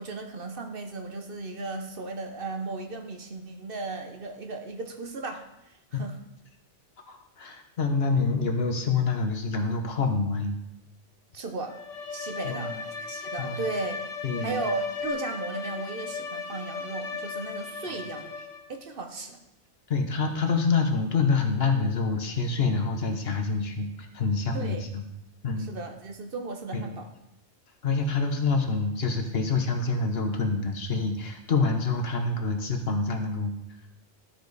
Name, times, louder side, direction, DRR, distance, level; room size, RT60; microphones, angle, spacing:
voice 1, 0.0-6.2 11.3-11.8 12.1-14.0 14.4-18.3 18.7-19.4 24.5-24.9 25.6-27.1, right 3 dB, 55° right, 5 dB, 1.0 m, -36 dB
voice 2, 7.1-10.6 12.4-12.7 13.4-13.6 14.2-14.6 19.9-25.0 25.4-25.7 26.7-27.0 27.8-33.5, left 4 dB, 60° left, 4 dB, 1.2 m, -27 dB
Bowed string instrument, 11.7-18.8, left 5 dB, 90° left, 1.3 m, -36 dB
12.5 x 5.0 x 4.0 m, 0.86 s
omnidirectional pair, 1.2 m